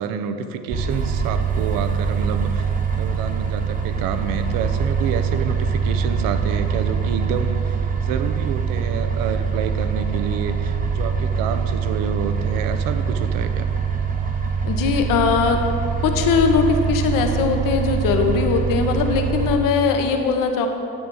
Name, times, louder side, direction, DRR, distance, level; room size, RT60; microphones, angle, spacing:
voice 1, 0.0-13.7, right 7 dB, 50° right, 9 dB, 0.8 m, -28 dB
sound 1, 0.7-19.6, right 6 dB, 20° right, 0.9 m, -23 dB
voice 2, 14.6-15.6 16.0-20.7, left 5 dB, 50° left, 5 dB, 1.1 m, -20 dB
9.5 x 7.9 x 3.9 m, 2.7 s
hypercardioid pair, 70°, 43 cm